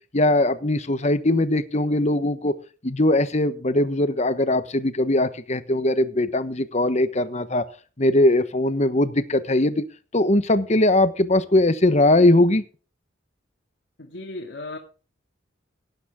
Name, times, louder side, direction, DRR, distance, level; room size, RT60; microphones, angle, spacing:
voice 1, 0.1-2.6 2.8-7.6 8.0-9.8 10.1-12.6, left 1 dB, 35° left, 12 dB, 1.1 m, -20 dB
voice 2, 14.0-14.8, left 2 dB, 65° left, 1 dB, 2.3 m, -35 dB
17.5 x 9.3 x 3.6 m, 0.37 s
head